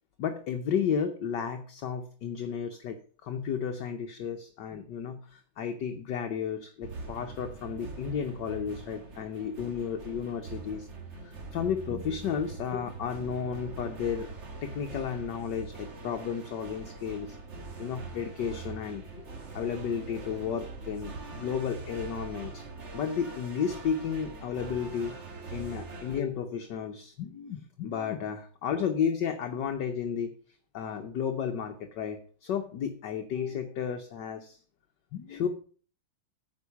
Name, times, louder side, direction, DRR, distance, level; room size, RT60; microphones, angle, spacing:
voice 1, 0.2-3.0 3.2-10.9 11.2-14.3 14.6-17.4 17.8-19.0 19.5-22.6 22.9-25.1 25.5-30.3 30.7-34.6 35.1-35.5, left 7 dB, 60° left, 5 dB, 1.4 m, -33 dB
sound 1, 6.8-26.2, right 3 dB, 35° right, 1.5 m, -43 dB
9.3 x 5.3 x 6.9 m, 0.42 s
omnidirectional pair, 2.3 m